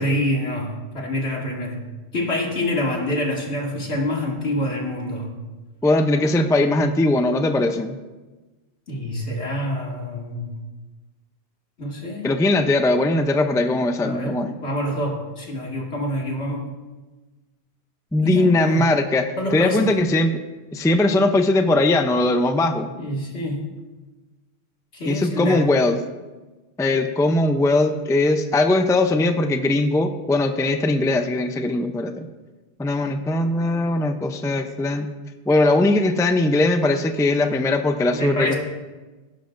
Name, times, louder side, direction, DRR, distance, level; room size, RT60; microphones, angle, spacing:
voice 1, 0.0-1.8 2.1-5.3 8.9-10.5 11.8-12.3 14.0-14.4 14.6-16.6 18.2-19.0 19.4-19.9 22.9-23.6 24.9-25.6 38.1-38.6, left 1 dB, 80° left, -2 dB, 2.4 m, -26 dB
voice 2, 5.8-8.0 12.2-14.5 18.1-20.4 20.7-22.9 25.1-26.0 26.8-32.3 32.8-35.1 35.5-38.5, left 2 dB, 5° left, 6 dB, 0.4 m, -20 dB
17.5 x 11.0 x 2.6 m, 1.2 s
omnidirectional pair, 1.1 m